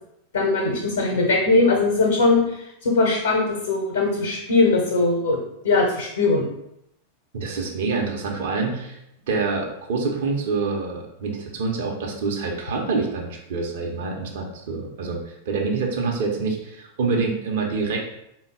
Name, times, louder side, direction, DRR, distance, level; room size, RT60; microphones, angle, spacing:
voice 1, 0.3-6.5, left 3 dB, 70° left, 0 dB, 0.7 m, -20 dB
voice 2, 7.3-9.0 9.3-18.0, right 4 dB, 55° right, 1 dB, 0.8 m, -26 dB
3.9 x 2.3 x 3.6 m, 0.79 s
figure-of-eight pair, 90°, 0 cm